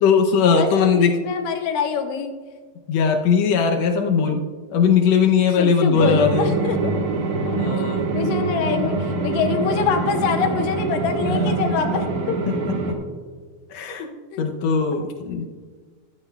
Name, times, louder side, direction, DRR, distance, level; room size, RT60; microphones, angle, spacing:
voice 1, 0.0-1.2 2.9-4.4 4.7-6.6 7.6-8.1 11.2-11.6 12.5-13.0 13.7-14.1 14.4-15.5, left 6 dB, 75° left, 3 dB, 1.6 m, -19 dB
voice 2, 0.6-2.3 5.6-6.9 7.5-7.6 8.1-12.4 14.3-14.5, left 6 dB, 90° left, 5 dB, 2.6 m, -25 dB
sound 1, 5.9-12.9, right 4 dB, 60° right, 2.3 m, -24 dB
15.0 x 13.0 x 2.3 m, 1.5 s
omnidirectional pair, 3.9 m